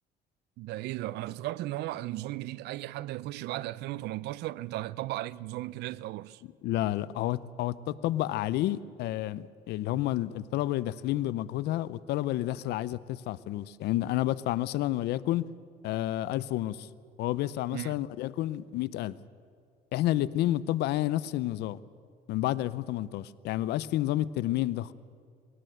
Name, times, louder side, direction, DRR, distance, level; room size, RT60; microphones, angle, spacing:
voice 1, 0.6-6.4 17.7-18.0, right 16 dB, 80° right, 0.5 m, -36 dB
voice 2, 6.6-15.4 15.8-16.9 17.2-19.2 19.9-21.8 22.3-24.9, left 14 dB, 80° left, 0.7 m, -30 dB
21.5 x 17.5 x 7.8 m
cardioid pair, 110°, 17 cm